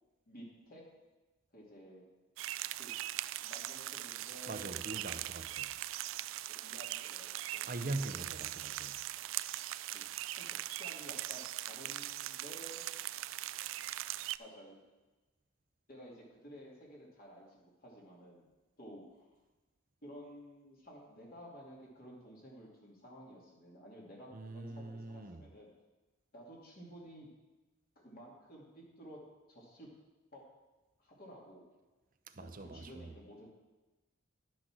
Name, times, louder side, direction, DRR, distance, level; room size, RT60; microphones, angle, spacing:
voice 1, 0.3-0.8 1.5-2.0 2.8-2.9 3.4-5.2 6.5-7.6 9.2-9.3 9.9-12.8 14.4-14.8 15.9-18.4 18.8-19.3 20.0-25.7 26.3-27.3 28.0-29.2 29.5-29.9 30.3-30.4 31.0-31.7 32.3-33.5, equal, 45° left, 2.7 m, -53 dB
sound 1, 2.4-14.4, right 14 dB, 65° right, 0.3 m, -41 dB
voice 2, 4.5-5.7 7.7-9.0 24.3-25.5 32.3-33.1, right 2 dB, 40° right, 0.7 m, -42 dB
11.5 x 6.3 x 6.1 m
head